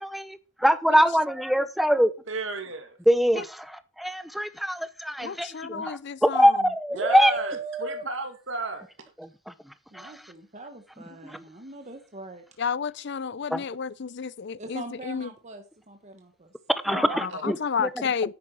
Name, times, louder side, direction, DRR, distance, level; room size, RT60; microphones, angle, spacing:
voice 1, 0.0-2.1 3.1-7.3 9.2-9.5 9.9-10.1 11.2-11.4 13.5-13.6 16.8-17.9, equal, ahead, 0.8 m, -23 dB
voice 2, 2.3-3.0 6.9-8.9 16.9-17.5, right 3 dB, 70° right, 2.4 m, -33 dB
voice 3, 5.2-6.6 12.6-15.3 16.9-18.3, left 6 dB, 60° left, 0.5 m, -31 dB
voice 4, 6.9-8.0 9.9-12.4 14.6-16.5, right 2 dB, 35° right, 1.3 m, -39 dB
10.5 x 8.7 x 4.7 m
head